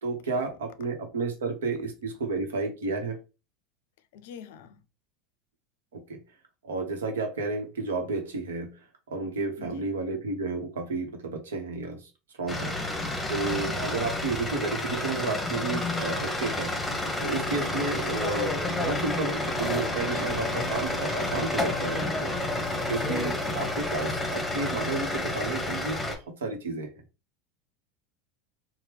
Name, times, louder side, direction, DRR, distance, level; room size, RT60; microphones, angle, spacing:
voice 1, 0.0-3.2 5.9-6.2 6.6-12.0 12.4-12.8 13.3-16.7 17.2-22.3 22.9-26.9, right 3 dB, 85° right, 0.8 m, -32 dB
voice 2, 4.1-4.8 9.6-9.9 13.4-13.8 23.1-23.6, left 7 dB, 70° left, 0.4 m, -46 dB
sound 1, 12.5-26.2, left 2 dB, 10° left, 0.9 m, -30 dB
2.9 x 2.1 x 3.3 m
hypercardioid pair, 90°, 0 cm